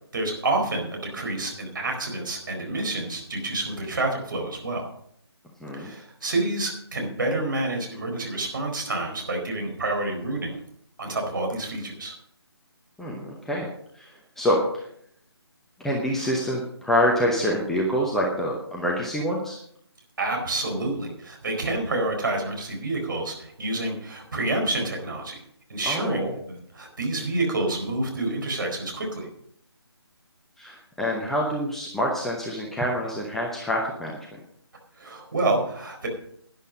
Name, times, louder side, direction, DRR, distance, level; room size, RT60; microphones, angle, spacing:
voice 1, 0.1-4.8 5.7-10.6 11.0-12.1 20.2-25.4 25.7-29.3 35.0-36.1, right 2 dB, 50° right, 2 dB, 4.4 m, -28 dB
voice 2, 13.0-13.7 13.9-14.8 15.8-19.6 25.9-26.3 30.6-34.2, equal, ahead, -2 dB, 0.8 m, -26 dB
12.0 x 10.5 x 5.2 m, 0.69 s
figure-of-eight pair, 150°, 14 cm